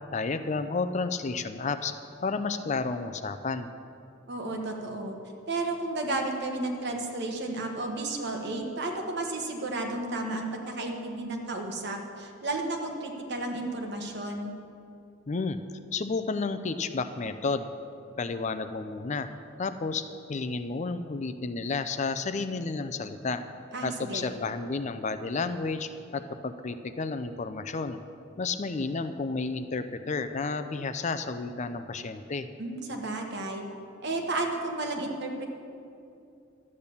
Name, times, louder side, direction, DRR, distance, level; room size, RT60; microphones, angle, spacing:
voice 1, 0.1-1.9 2.2-3.7 15.3-15.6 15.9-17.7 18.2-19.3 19.6-20.0 20.3-23.4 23.8-28.0 28.4-32.5, left 4 dB, 35° left, 10 dB, 0.5 m, -31 dB
voice 2, 4.3-5.2 5.5-14.5 23.7-24.3 32.6-33.6 34.0-35.4, right 2 dB, 60° right, 2 dB, 1.5 m, -32 dB
12.0 x 8.6 x 7.0 m, 2.6 s
head